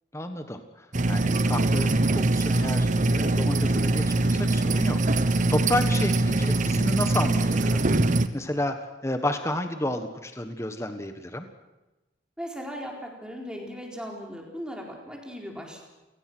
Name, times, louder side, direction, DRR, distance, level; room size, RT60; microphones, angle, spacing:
voice 1, 0.1-7.8 8.3-11.5, left 1 dB, 15° left, 7 dB, 1.4 m, -31 dB
sound 1, 0.9-8.3, right 2 dB, 40° right, 1.1 m, -23 dB
voice 2, 12.4-15.8, equal, 5° right, 0 dB, 4.2 m, -38 dB
30.0 x 18.5 x 6.2 m, 1.1 s
head